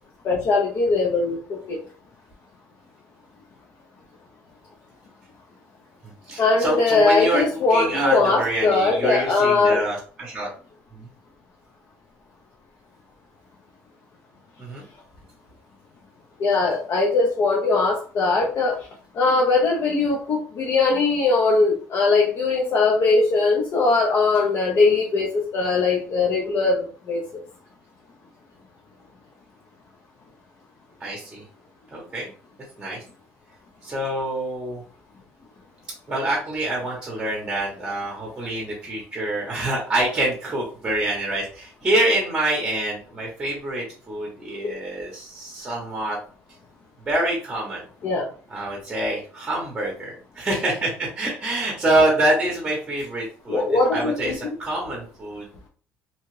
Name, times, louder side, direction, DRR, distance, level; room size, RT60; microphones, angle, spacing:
voice 1, 0.2-1.8 6.4-9.8 16.4-18.8 19.1-27.2 48.0-48.3 53.5-54.4, left 3 dB, 50° left, -1 dB, 0.7 m, -20 dB
voice 2, 6.0-7.4 7.7-10.5 10.9-11.1 14.6-14.8 31.0-31.4 31.9-32.3 32.8-33.0 33.8-34.8 36.1-46.2 47.1-47.8 48.5-55.5, right 1 dB, 15° right, -2 dB, 0.9 m, -26 dB
2.8 x 2.4 x 3.1 m, 0.41 s
cardioid pair, 135°, 5 cm